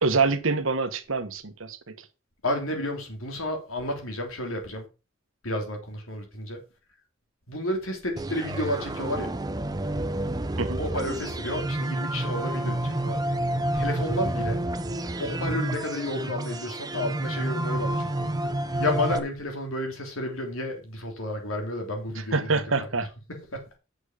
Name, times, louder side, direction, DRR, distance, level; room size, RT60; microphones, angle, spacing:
voice 1, 0.0-2.1 10.6-10.8 22.1-23.1, right 4 dB, 75° right, 1.3 m, -26 dB
voice 2, 2.4-4.9 5.4-6.6 7.5-9.3 10.8-13.2 13.7-14.6 15.2-18.3 18.8-22.5 22.9-23.0 23.3-23.6, left 1 dB, 90° left, 3.1 m, -31 dB
sound 1, 8.2-19.2, right 1 dB, 20° right, 0.7 m, -29 dB
8.7 x 6.3 x 5.0 m
head